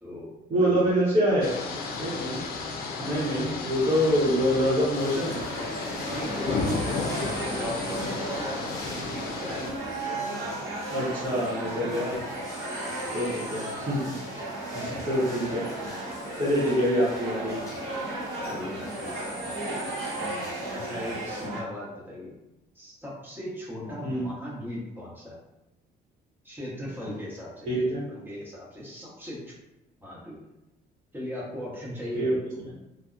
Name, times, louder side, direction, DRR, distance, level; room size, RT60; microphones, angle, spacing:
voice 1, 0.5-1.5 2.0-2.4 3.0-5.4 10.9-12.2 13.1-14.0 14.7-17.6 24.0-24.3 27.6-28.0 32.1-32.3, equal, 35° right, -10 dB, 0.9 m, -26 dB
sound 1, 1.4-9.7, left 3 dB, 65° left, 0.4 m, -33 dB
voice 2, 3.0-3.6 6.1-9.7 12.0-12.2 12.8-13.1 18.4-19.8 20.1-22.3 22.7-25.4 26.4-29.4 30.0-30.4 31.1-32.7, left 1 dB, 10° right, -7 dB, 1.0 m, -39 dB
sound 2, 4.9-21.5, left 1 dB, 20° left, 0.6 m, -44 dB
sound 3, 5.1-21.6, right 1 dB, 75° right, 0.9 m, -35 dB
2.7 x 2.0 x 2.4 m, 0.94 s
cardioid pair, 110°, 17 cm